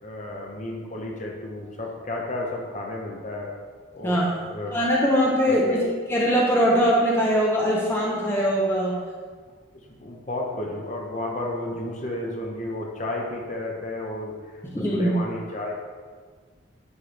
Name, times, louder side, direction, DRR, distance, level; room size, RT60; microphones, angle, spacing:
voice 1, 0.0-3.5 3.9-4.8 5.5-5.8 10.0-14.6 14.9-15.8, left 1 dB, 35° left, -1 dB, 0.8 m, -32 dB
voice 2, 4.7-9.0 14.7-15.1, equal, 10° left, -4 dB, 0.7 m, -22 dB
9.6 x 3.3 x 3.3 m, 1.5 s
head